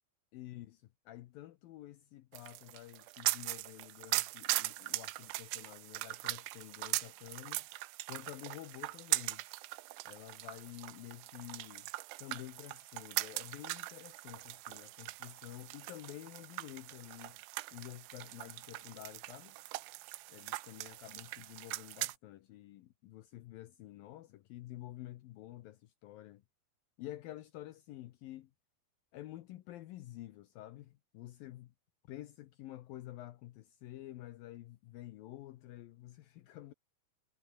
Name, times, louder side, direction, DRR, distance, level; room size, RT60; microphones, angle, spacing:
voice 1, 0.3-7.7 8.1-9.4 10.1-11.9 12.2-17.4 17.7-19.6 20.3-26.4 27.0-28.5 29.1-31.7 32.0-36.7, left 15 dB, 85° left, 2.0 m, -50 dB
sound 1, 2.3-22.2, right 20 dB, 90° right, 3.2 m, -40 dB
omnidirectional pair, 5.5 m